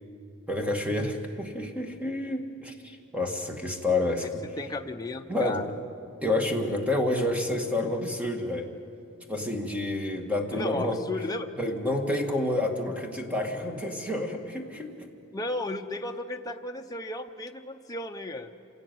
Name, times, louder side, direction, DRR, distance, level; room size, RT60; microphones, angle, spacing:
voice 1, 0.5-4.4 5.3-5.7 6.2-8.7 9.3-11.0 11.6-15.1, left 1 dB, 5° right, 3 dB, 2.0 m, -29 dB
voice 2, 4.6-5.7 10.5-11.7 12.1-12.2 15.3-18.5, left 2 dB, 15° left, 3 dB, 0.7 m, -34 dB
26.5 x 17.0 x 9.3 m, 2.5 s
head